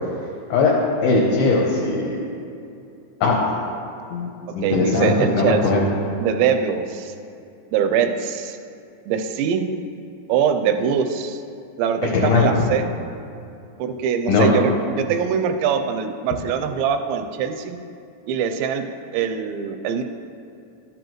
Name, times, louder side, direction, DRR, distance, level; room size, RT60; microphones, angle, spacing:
voice 1, 1.0-2.2 3.2-3.4 4.1-4.3 4.5-5.8 12.1-12.4 14.3-14.5, left 4 dB, 70° left, -3 dB, 2.5 m, -19 dB
voice 2, 4.6-5.8 6.2-7.1 7.7-8.6 9.1-9.7 10.3-11.4 11.8-12.9 13.8-17.8 18.3-18.9 19.1-20.0, right 7 dB, 85° right, 7 dB, 2.8 m, -22 dB
13.0 x 7.7 x 3.1 m, 2.6 s
omnidirectional pair, 5.1 m